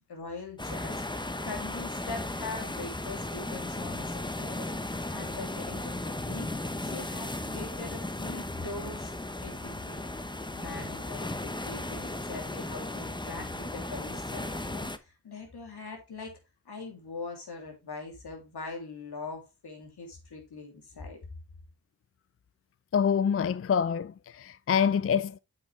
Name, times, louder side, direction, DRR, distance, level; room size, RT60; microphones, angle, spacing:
voice 1, 0.1-6.5 6.8-9.1 9.4-10.0 10.5-16.4 16.6-21.2, left 3 dB, 75° left, 3.1 m, -42 dB
sound 1, 0.6-15.0, left 2 dB, 10° left, 0.9 m, -36 dB
voice 2, 22.9-25.4, left 7 dB, 35° left, 0.5 m, -26 dB
7.5 x 6.3 x 3.3 m
cardioid pair, 45°, 39 cm